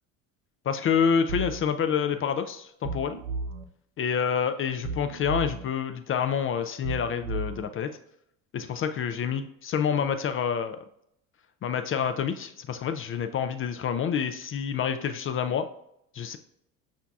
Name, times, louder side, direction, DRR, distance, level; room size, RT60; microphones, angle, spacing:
voice 1, 0.6-3.2 4.0-7.9 8.5-10.8 11.6-15.6 16.1-16.4, left 7 dB, 35° left, 9 dB, 0.4 m, -28 dB
sound 1, 1.3-1.6 2.8-3.6 4.8-5.6 6.8-7.6, right 3 dB, 90° right, 0.7 m, -34 dB
8.2 x 2.8 x 2.3 m, 0.74 s
supercardioid pair, 90°, 39 cm